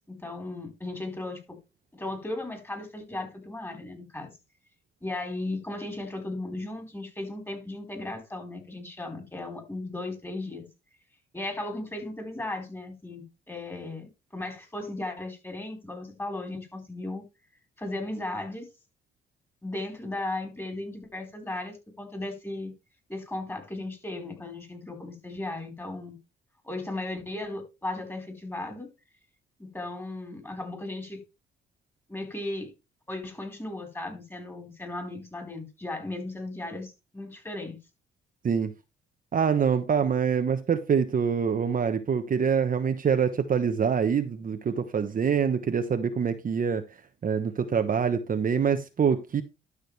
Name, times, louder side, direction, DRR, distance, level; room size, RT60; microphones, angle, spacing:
voice 1, 0.1-1.4 1.9-4.3 5.0-10.6 11.3-17.2 17.8-18.7 19.6-22.7 23.1-26.2 26.6-28.9 29.6-31.2 32.1-32.7 33.1-37.8, left 2 dB, 10° left, 4.3 m, -36 dB
voice 2, 39.3-46.8 47.2-49.4, right 7 dB, 45° right, 1.1 m, -25 dB
12.0 x 6.4 x 3.3 m
cardioid pair, 90°, 20 cm